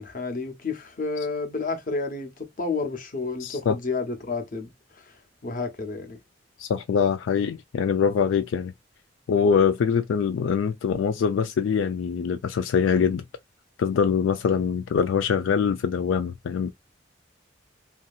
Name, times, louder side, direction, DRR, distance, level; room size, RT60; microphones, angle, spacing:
voice 1, 0.0-4.7 5.0-5.1 5.4-6.2, left 3 dB, 45° left, 0.8 m, -30 dB
voice 2, 3.4-3.8 6.6-8.7 9.3-13.2 13.8-16.7, left 6 dB, 85° left, 0.3 m, -23 dB
2.8 x 2.7 x 2.3 m
head